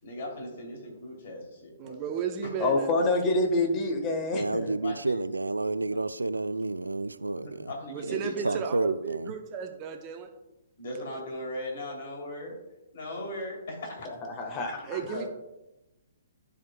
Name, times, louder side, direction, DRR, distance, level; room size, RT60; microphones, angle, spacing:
voice 1, 0.0-2.5 4.8-5.2 7.6-8.6 10.8-12.5 12.9-14.1 14.8-15.3, left 1 dB, 50° left, 0 dB, 2.8 m, -38 dB
voice 2, 1.8-2.9 7.9-10.3 14.9-15.3, right 7 dB, 30° right, 6 dB, 0.7 m, -34 dB
voice 3, 2.6-4.7 14.0-15.0, left 2 dB, 25° left, 3 dB, 1.3 m, -27 dB
voice 4, 4.3-7.7 8.0-9.3, right 2 dB, 80° right, 14 dB, 0.3 m, -30 dB
14.0 x 5.0 x 2.2 m, 0.96 s
figure-of-eight pair, 125°, 0 cm